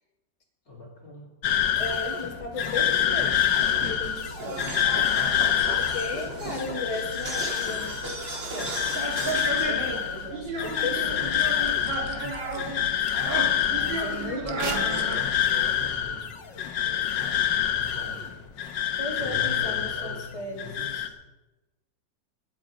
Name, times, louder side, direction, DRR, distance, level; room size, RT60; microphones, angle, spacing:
voice 1, 0.7-1.3 12.1-12.5 14.2-18.3 19.2-21.1, left 1 dB, 50° left, -1 dB, 3.0 m, -42 dB
sound 1, 1.4-20.3 20.6-21.1, left 10 dB, 80° left, 1.7 m, -27 dB
voice 2, 1.8-3.5 3.7-4.7 5.8-7.9 8.5-8.7 9.2-11.4 13.7-15.0 19.0-21.0, left 2 dB, 20° left, -2 dB, 2.5 m, -36 dB
sound 2, 3.5-12.8 13.1-15.2, right 3 dB, 85° right, 3.2 m, -33 dB
sound 3, 11.1-15.2 15.7-15.9, right 1 dB, 15° right, 1.5 m, -47 dB
20.0 x 10.5 x 5.1 m, 1.1 s
omnidirectional pair, 2.0 m